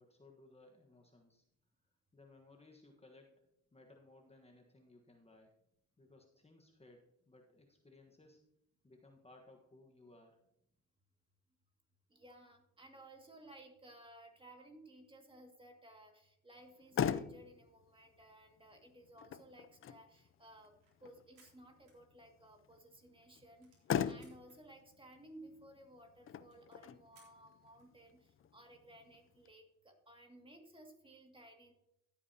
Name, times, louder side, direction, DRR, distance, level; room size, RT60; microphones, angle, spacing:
voice 1, 0.0-1.4 2.1-3.4 3.7-5.6 6.0-8.4 8.8-10.4, left 2 dB, 20° left, 2 dB, 1.3 m, -62 dB
voice 2, 12.1-23.8 24.0-31.7, right 1 dB, 15° right, 3 dB, 2.2 m, -58 dB
Motor vehicle (road), 16.6-29.5, left 8 dB, 45° left, 0.5 m, -43 dB
sound 1, 20.1-22.6 23.0-23.1 23.3-24.6 25.2-25.3 25.5-25.6 25.8-25.9 26.3-27.9, right 4 dB, 90° right, 3.8 m, -71 dB
15.5 x 8.5 x 2.8 m, 0.79 s
cardioid pair, 90°, 30 cm